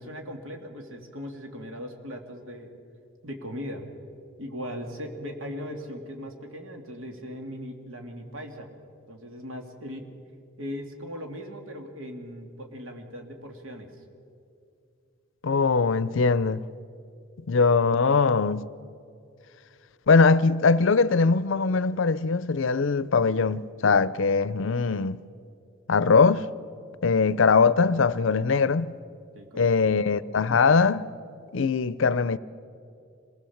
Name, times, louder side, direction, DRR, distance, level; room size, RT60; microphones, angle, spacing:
voice 1, 0.0-2.7 3.2-3.8 4.4-8.7 9.1-10.1 10.6-13.9 29.3-29.9, equal, 75° right, 2.4 m, -38 dB
voice 2, 15.4-16.6 17.5-18.7 20.1-25.2 25.9-26.4 27.0-29.0 29.6-31.1 31.5-32.4, left 4 dB, 65° left, 0.5 m, -21 dB
25.5 x 19.0 x 7.2 m
head